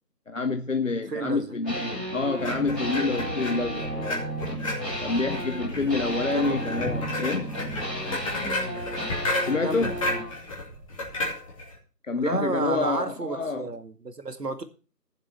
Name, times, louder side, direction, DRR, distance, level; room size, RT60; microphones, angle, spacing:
voice 1, 0.3-4.2 5.0-7.6 9.4-10.0 12.0-13.7, left 3 dB, 50° left, 0.8 m, -28 dB
voice 2, 1.1-1.5 6.3-6.6 9.6-10.2 12.2-14.6, right 3 dB, 70° right, 2.2 m, -31 dB
sound 1, 1.6-10.3, right 1 dB, ahead, 3.5 m, -33 dB
sound 2, 2.4-11.8, left 2 dB, 20° left, 2.7 m, -33 dB
sound 3, 4.9-11.4, right 5 dB, 20° right, 2.3 m, -48 dB
14.5 x 7.3 x 5.8 m
figure-of-eight pair, 165°, 49 cm